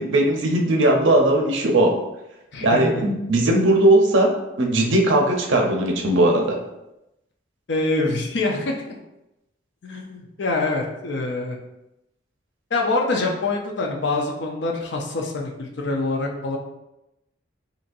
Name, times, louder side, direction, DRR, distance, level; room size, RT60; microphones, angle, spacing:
voice 1, 0.0-1.9 2.6-6.6, right 1 dB, 75° right, 1 dB, 0.6 m, -18 dB
voice 2, 2.5-3.0 7.7-8.9 9.8-11.6 12.7-16.6, left 2 dB, 65° left, 1 dB, 0.5 m, -25 dB
4.0 x 2.8 x 2.5 m, 0.90 s
head